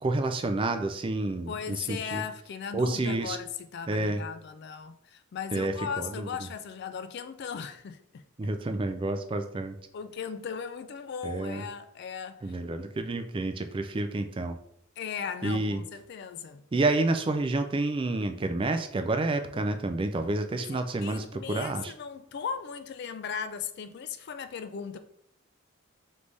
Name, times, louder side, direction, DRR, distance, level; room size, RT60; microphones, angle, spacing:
voice 1, 0.0-2.2 2.7-3.4 3.9-4.2 5.5-6.1 8.4-9.8 11.2-11.6 12.4-14.6 15.4-15.8 16.7-21.9, right 2 dB, 25° right, 0.3 m, -29 dB
voice 2, 1.5-8.2 9.9-12.6 15.0-16.6 20.6-25.0, left 7 dB, 55° left, 0.3 m, -37 dB
3.4 x 3.2 x 3.9 m
head